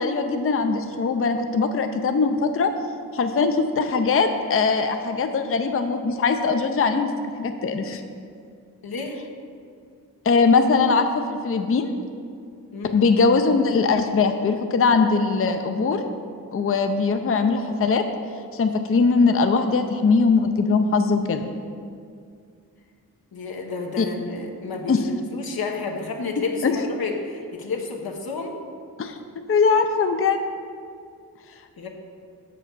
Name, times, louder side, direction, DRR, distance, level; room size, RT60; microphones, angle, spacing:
voice 1, 0.0-2.7 3.1-7.1 7.4-8.0 10.3-11.9 12.9-16.1 16.5-18.0 18.5-21.4 24.0-24.1 24.9-25.0 26.6-26.7 29.0-29.2 29.5-30.4, left 4 dB, 40° left, 7 dB, 0.5 m, -21 dB
voice 2, 8.8-9.2 12.7-13.0 23.3-28.6 31.8-31.9, left 4 dB, 80° left, 2 dB, 1.0 m, -31 dB
6.6 x 5.0 x 6.1 m, 2.3 s
cardioid pair, 55°, 36 cm